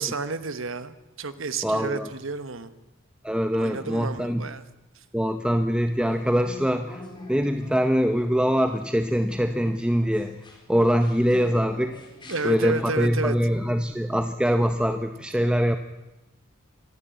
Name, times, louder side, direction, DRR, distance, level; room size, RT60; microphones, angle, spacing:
voice 1, 0.0-2.7 3.5-4.6 12.3-13.3, right 4 dB, 65° right, 12 dB, 1.3 m, -31 dB
voice 2, 1.6-2.1 3.2-4.4 5.1-7.0 7.3-10.4 10.7-12.0 12.4-15.8, equal, 5° right, 7 dB, 0.8 m, -23 dB
sound 1, 6.0-12.9, left 1 dB, 25° left, 4.1 m, -45 dB
25.0 x 11.5 x 9.2 m, 1.0 s
head